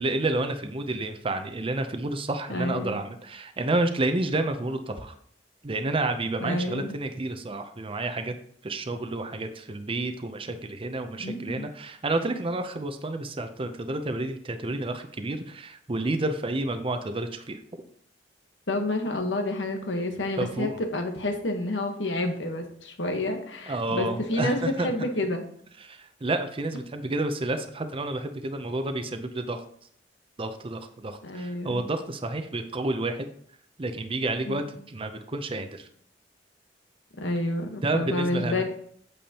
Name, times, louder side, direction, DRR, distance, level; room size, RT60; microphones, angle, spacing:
voice 1, 0.0-5.1 5.6-8.3 8.6-17.6 20.4-20.8 23.7-24.9 25.8-29.6 30.4-33.3 33.8-35.9 37.8-38.6, right 2 dB, 30° right, 7 dB, 0.6 m, -30 dB
voice 2, 2.5-3.0 6.4-7.0 11.2-11.7 18.7-25.4 31.2-31.9 34.4-34.7 37.2-38.6, left 1 dB, 85° left, 5 dB, 1.2 m, -29 dB
8.5 x 7.1 x 2.9 m, 0.64 s
head